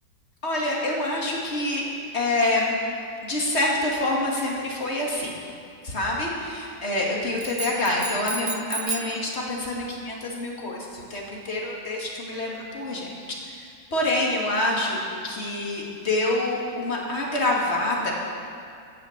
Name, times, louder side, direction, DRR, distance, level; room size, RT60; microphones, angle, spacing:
voice 1, 0.4-1.8 2.1-2.7 3.2-5.3 5.8-18.1, left 1 dB, 35° left, -3 dB, 2.7 m, -26 dB
sound 1, 7.4-9.2, right 3 dB, 20° right, 0.8 m, -32 dB
15.5 x 10.0 x 7.5 m, 2.4 s
omnidirectional pair, 1.9 m